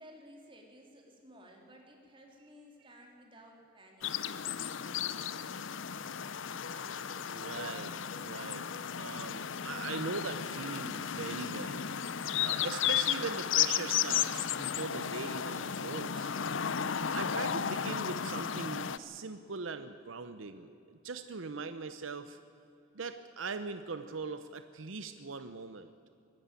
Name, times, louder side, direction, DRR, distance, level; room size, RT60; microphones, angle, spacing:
voice 1, 0.0-4.1, equal, 25° right, 1 dB, 3.4 m, -55 dB
sound 1, 4.0-19.0, left 8 dB, 70° left, 0.7 m, -34 dB
voice 2, 7.3-8.7 9.0-11.9 12.4-16.3 17.1-22.4 22.9-25.9, right 4 dB, 75° right, 10 dB, 0.8 m, -41 dB
23.0 x 13.0 x 9.0 m, 2.7 s
head